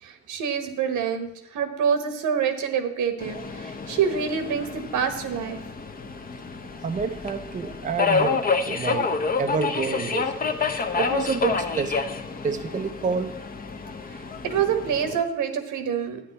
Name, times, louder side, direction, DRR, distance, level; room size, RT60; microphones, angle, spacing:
voice 1, 0.0-5.6 14.1-16.2, right 7 dB, 80° right, 1.3 m, -26 dB
Subway metro underground, 3.2-15.2, left 4 dB, 30° left, 0.8 m, -29 dB
voice 2, 6.8-10.3 10.9-12.0 12.4-13.4, right 5 dB, 25° right, 0.5 m, -28 dB
10.5 x 8.8 x 4.1 m
cardioid pair, 90°, 30 cm